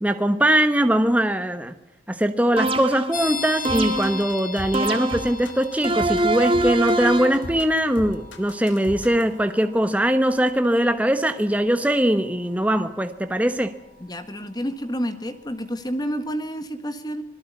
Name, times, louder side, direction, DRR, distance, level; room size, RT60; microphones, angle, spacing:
voice 1, 0.0-1.7 2.1-13.7, right 1 dB, 10° right, 8 dB, 1.0 m, -21 dB
sound 1, 2.6-3.2 3.6-4.3 4.7-5.4 5.8-7.4, right 2 dB, 30° right, 1.8 m, -23 dB
sound 2, 3.1-15.6, left 5 dB, 45° left, 6.8 m, -40 dB
sound 3, 3.7-9.3, left 1 dB, 80° left, 3.2 m, -37 dB
voice 2, 14.0-17.2, equal, 20° left, 9 dB, 1.6 m, -29 dB
26.0 x 20.5 x 8.4 m, 0.80 s
head